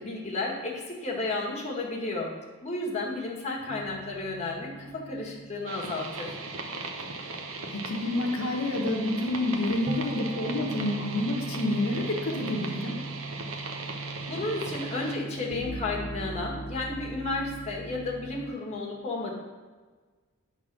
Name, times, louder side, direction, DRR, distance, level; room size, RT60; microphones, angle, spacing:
voice 1, 0.0-2.3 2.6-6.4 14.3-19.3, left 2 dB, 30° left, -3 dB, 1.6 m, -32 dB
sound 1, 3.7-18.4, right 3 dB, 35° right, 1.0 m, -41 dB
sound 2, 5.7-15.2, right 3 dB, 65° right, 0.8 m, -38 dB
voice 2, 7.7-13.0, left 1 dB, 80° left, 0 dB, 1.1 m, -28 dB
8.6 x 4.0 x 6.0 m, 1.4 s
head